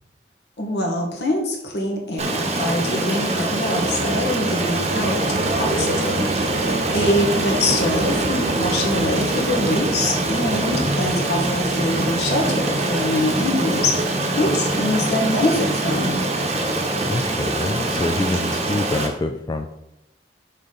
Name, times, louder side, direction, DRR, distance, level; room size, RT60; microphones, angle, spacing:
voice 1, 0.6-5.2 5.6-6.3 6.8-14.1 14.4-16.2, left 1 dB, 70° left, 1 dB, 1.6 m, -24 dB
Stream, 2.2-19.1, right 2 dB, 35° right, 1.0 m, -24 dB
sound 1, 3.5-16.8, right 2 dB, 55° right, 0.6 m, -29 dB
voice 2, 17.1-19.8, left 2 dB, 20° left, 5 dB, 0.3 m, -26 dB
6.5 x 5.1 x 4.0 m, 0.84 s
head